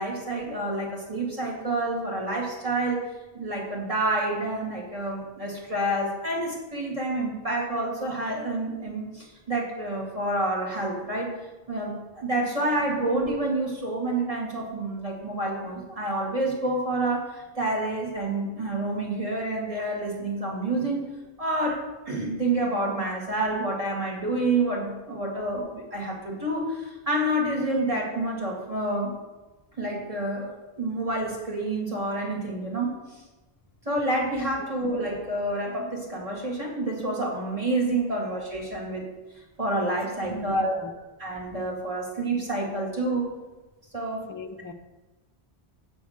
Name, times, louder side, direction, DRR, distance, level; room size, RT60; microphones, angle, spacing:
voice 1, 0.0-3.0 3.3-11.3 11.7-21.1 21.4-29.1 29.8-33.0 33.9-39.0 39.6-40.8 41.2-43.3 43.9-44.2, right 2 dB, 35° right, 2.3 m, -28 dB
voice 2, 40.3-40.9 44.3-44.7, left 2 dB, 25° left, 0.5 m, -38 dB
6.9 x 6.8 x 6.4 m
omnidirectional pair, 1.1 m